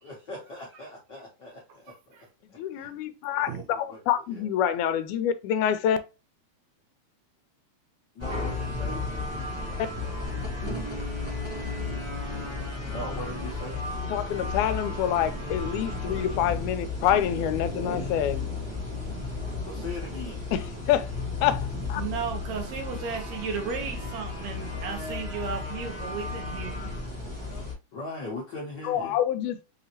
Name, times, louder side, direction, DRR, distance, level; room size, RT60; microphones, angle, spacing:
voice 1, 0.0-2.3 2.7-2.9 3.3-3.6 3.9-4.0 4.3-4.4 8.1-9.0 9.6-10.2 12.9-13.8 19.6-20.5 27.9-29.2, left 2 dB, 60° left, 1.2 m, -40 dB
voice 2, 1.9-2.3 2.8-2.9 3.5-3.6 22.0-26.9, right 6 dB, 75° right, 2.0 m, -35 dB
voice 3, 2.6-6.0 14.1-18.5 20.5-21.1 21.4-22.0 27.4-27.6 28.8-29.6, left 10 dB, 85° left, 2.0 m, -27 dB
sound 1, 8.2-27.7, left 3 dB, 35° right, 0.4 m, -33 dB
5.3 x 2.8 x 2.8 m
omnidirectional pair, 3.4 m